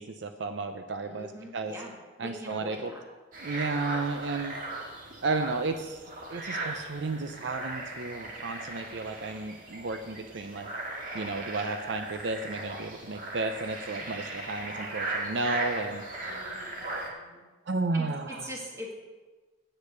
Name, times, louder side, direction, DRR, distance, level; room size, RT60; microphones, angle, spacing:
voice 1, 0.0-1.7 2.2-2.9 3.4-4.6 5.2-6.0 6.3-10.7 11.1-16.1 17.7-18.5, right 3 dB, 65° right, 7 dB, 0.6 m, -33 dB
voice 2, 1.0-3.0 13.9-14.3 16.2-17.4 17.9-18.9, equal, 15° right, -2 dB, 1.9 m, -43 dB
sound 1, 3.3-17.1, right 2 dB, 45° right, 1.8 m, -38 dB
8.4 x 8.3 x 6.7 m, 1.3 s
head